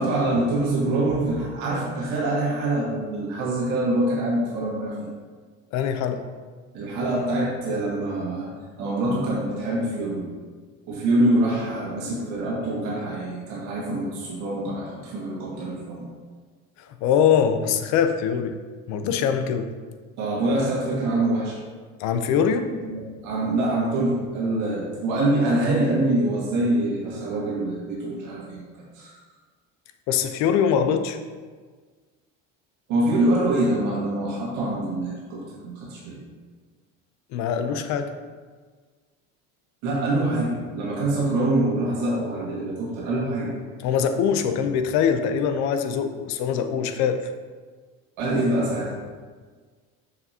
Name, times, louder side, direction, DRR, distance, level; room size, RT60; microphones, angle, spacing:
voice 1, 0.0-5.1 6.7-8.5 8.8-10.3 10.9-16.1 20.2-21.6 22.8-29.2 32.9-36.2 39.8-43.5 48.2-48.9, right 1 dB, 65° right, -5 dB, 1.9 m, -25 dB
voice 2, 5.7-6.2 17.0-18.6 18.9-19.7 22.0-22.7 30.1-31.2 37.3-38.1 43.8-47.3, left 7 dB, 60° left, 8 dB, 0.7 m, -23 dB
6.7 x 6.7 x 2.8 m, 1.5 s
cardioid pair, 150°, 31 cm